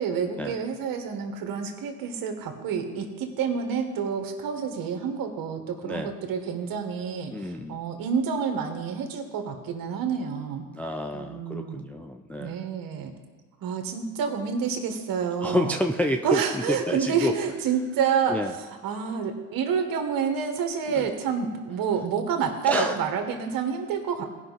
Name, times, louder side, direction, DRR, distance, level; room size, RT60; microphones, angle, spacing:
voice 1, 0.0-10.7 11.1-11.8 12.4-13.1 13.6-15.8 16.2-24.3, right 6 dB, 55° right, 6 dB, 1.7 m, -28 dB
voice 2, 5.8-6.1 7.3-7.8 10.7-12.7 15.4-17.3 18.3-18.5 20.9-21.1 22.7-23.0, left 1 dB, 5° left, 4 dB, 0.5 m, -29 dB
16.5 x 5.8 x 4.1 m, 1.3 s
hypercardioid pair, 75°, 41 cm